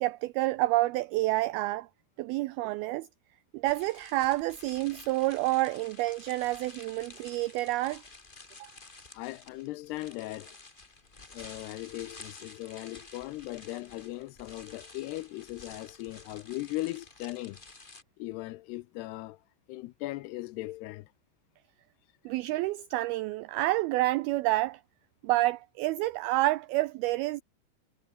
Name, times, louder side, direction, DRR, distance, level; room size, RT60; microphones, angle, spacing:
voice 1, 0.0-1.9 2.2-3.1 3.5-8.0 8.6-8.7 22.3-24.8 25.2-27.4, right 18 dB, 90° right, 2.1 m, -28 dB
sound 1, 3.6-18.0, left 3 dB, 60° left, 0.5 m, -51 dB
voice 2, 9.1-10.6 11.3-17.6 18.2-19.4 19.7-21.1, left 18 dB, 80° left, 2.6 m, -38 dB
omnidirectional pair, 5.1 m